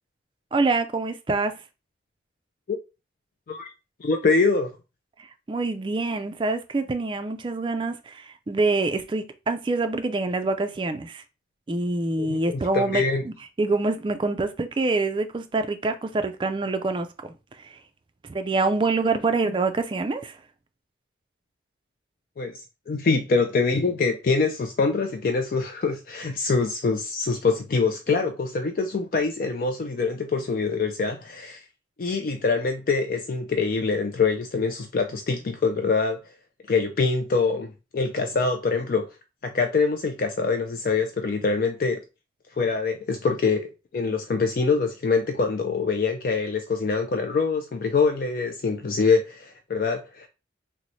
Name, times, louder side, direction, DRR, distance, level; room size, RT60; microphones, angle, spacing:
voice 1, 0.5-1.6 5.2-11.2 11.7-17.8 18.2-20.4, right 3 dB, 25° right, 0.3 m, -26 dB
voice 2, 4.0-4.7 12.2-13.2 22.4-22.6 22.9-31.6 32.0-36.2 36.7-37.7 37.9-39.1 39.4-42.0 42.5-50.3, left 4 dB, 50° left, 0.3 m, -24 dB
3.0 x 2.0 x 4.0 m
head